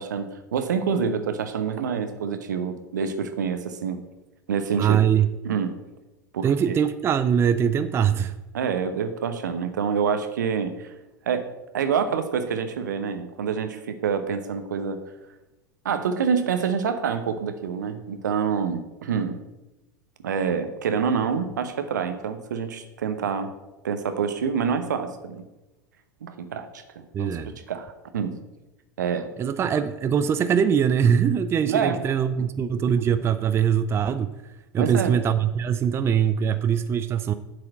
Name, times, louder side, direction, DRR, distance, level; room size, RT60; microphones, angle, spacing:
voice 1, 0.0-4.0 4.5-5.0 5.4-5.7 6.3-6.8 8.5-10.9 11.3-15.0 15.8-19.4 20.2-23.5 23.8-25.4 26.2-26.8 27.2-28.4 29.0-29.3 31.6-32.0 34.8-35.2, right 6 dB, 75° right, 9 dB, 1.0 m, -27 dB
voice 2, 4.8-5.3 6.4-8.4 27.1-27.5 29.4-34.3 34.7-37.3, right 8 dB, 25° right, 11 dB, 0.4 m, -22 dB
8.1 x 4.8 x 7.4 m, 1.0 s
figure-of-eight pair, 85°, 10 cm